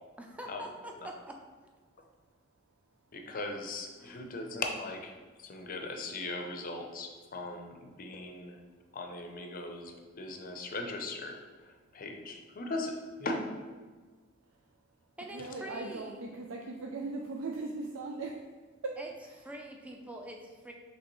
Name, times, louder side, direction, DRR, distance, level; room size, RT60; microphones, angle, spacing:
voice 1, 0.2-1.2 4.0-4.5 15.2-16.2 19.0-19.1 19.4-20.7, right 1 dB, 5° right, 1 dB, 0.4 m, -45 dB
voice 2, 3.1-5.1 5.4-8.6 8.9-13.6, left 2 dB, 45° left, 3 dB, 0.5 m, -39 dB
voice 3, 14.5-14.8 15.3-19.0, right 3 dB, 85° right, 0 dB, 0.4 m, -39 dB
5.2 x 3.3 x 3.0 m, 1.4 s
head